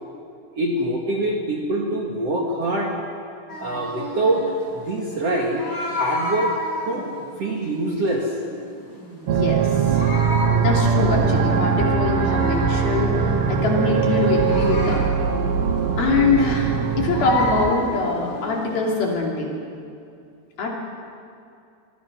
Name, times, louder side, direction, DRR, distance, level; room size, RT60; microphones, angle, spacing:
voice 1, 0.5-2.9 3.6-6.5 6.8-7.1 7.4-8.3, right 1 dB, 50° right, -1 dB, 2.2 m, -24 dB
sound 1, 3.5-19.1, left 2 dB, 30° left, 5.6 m, -32 dB
voice 2, 9.3-10.0 10.6-15.1 16.0-19.5 20.6-20.8, left 3 dB, 60° left, -1 dB, 4.6 m, -23 dB
sound 2, 9.3-17.7, right 6 dB, 85° right, 3.4 m, -21 dB
27.0 x 22.0 x 6.1 m, 2.5 s
omnidirectional pair, 4.9 m